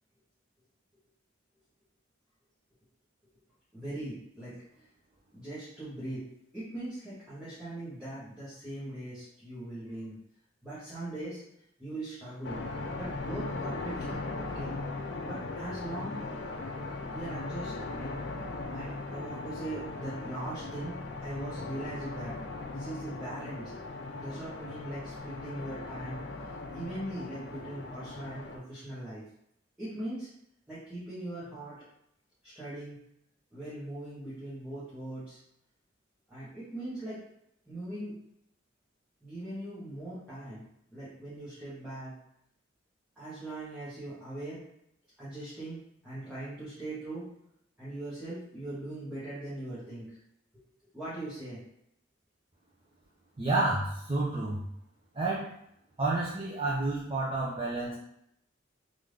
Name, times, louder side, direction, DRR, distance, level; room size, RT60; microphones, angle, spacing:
voice 1, 3.7-4.9 5.3-6.3 6.5-10.2 10.6-11.4 11.8-12.6 12.9-14.7 15.2-16.2 17.1-18.2 18.7-22.3 22.7-23.7 24.2-29.2 29.8-30.3 30.7-31.8 32.4-33.0 33.5-35.4 36.3-37.2 37.6-38.1 39.2-40.6 40.9-42.2 43.1-44.6 45.2-47.2 47.8-50.2 50.5-50.6 50.9-51.6, right 1 dB, 5° right, -13 dB, 1.2 m, -40 dB
sound 1, 12.4-28.6, left 3 dB, 60° left, 0.4 m, -39 dB
voice 2, 53.4-54.6 55.1-55.5 56.0-57.9, right 2 dB, 30° right, -7 dB, 0.5 m, -30 dB
3.5 x 2.6 x 3.2 m, 0.76 s
head